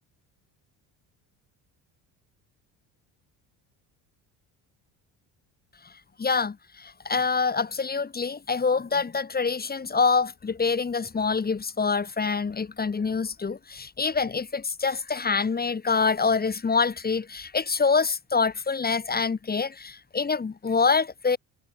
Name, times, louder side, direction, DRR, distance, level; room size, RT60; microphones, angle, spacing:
voice 1, 6.2-21.4, left 5 dB, 20° left, 1.4 m, -26 dB
supercardioid pair, 80°, 41 cm